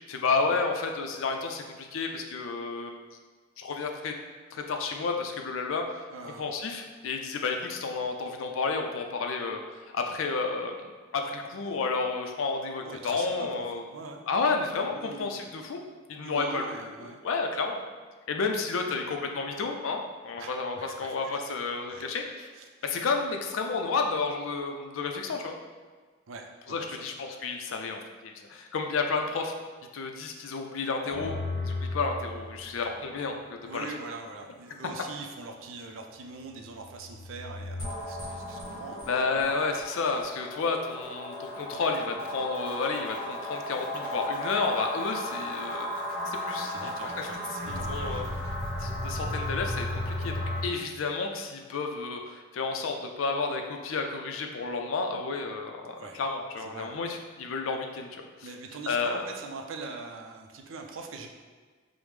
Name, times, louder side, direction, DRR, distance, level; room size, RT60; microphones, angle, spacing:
voice 1, 0.1-3.0 3.6-4.1 4.5-9.6 9.9-10.7 11.1-13.8 14.3-15.8 16.1-16.6 17.2-17.8 18.3-22.5 22.8-25.6 26.7-29.5 29.9-31.3 31.6-33.9 39.1-45.9 46.3-47.3 47.7-48.2 48.8-50.3 50.6-58.1 58.4-58.5 58.9-59.2, left 4 dB, 90° left, 3 dB, 0.4 m, -31 dB
voice 2, 6.1-6.4 12.8-13.5 13.7-14.2 14.9-15.5 16.2-17.2 20.4-21.4 21.9-22.1 22.6-22.7 26.3-27.1 33.6-39.5 46.5-48.4 56.0-56.2 56.6-57.0 58.4-61.3, right 3 dB, 90° right, 3 dB, 0.4 m, -43 dB
sound 1, 31.1-32.8 36.8-50.6, left 1 dB, 55° left, 1.2 m, -35 dB
5.0 x 2.1 x 3.1 m, 1.5 s
head